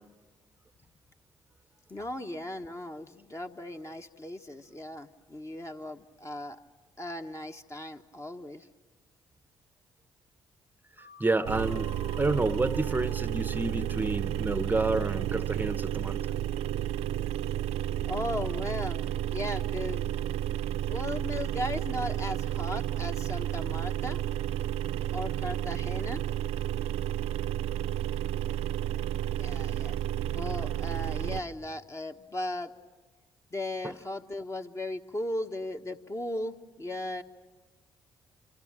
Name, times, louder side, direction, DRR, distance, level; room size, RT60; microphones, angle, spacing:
voice 1, 1.9-6.6 7.0-8.7 18.0-19.0 19.3-20.1 20.9-24.2 25.1-26.2 29.4-32.7 33.5-37.2, left 1 dB, 25° left, 5 dB, 1.4 m, -37 dB
sound 1, 11.0-14.8, left 1 dB, 90° left, 4.1 m, -52 dB
voice 2, 11.0-16.2 33.8-33.9, right 2 dB, 15° right, 13 dB, 0.8 m, -30 dB
sound 2, 11.4-31.4, right 12 dB, 70° right, 0.7 m, -31 dB
27.0 x 26.0 x 7.5 m, 1.3 s
hypercardioid pair, 45°, 11 cm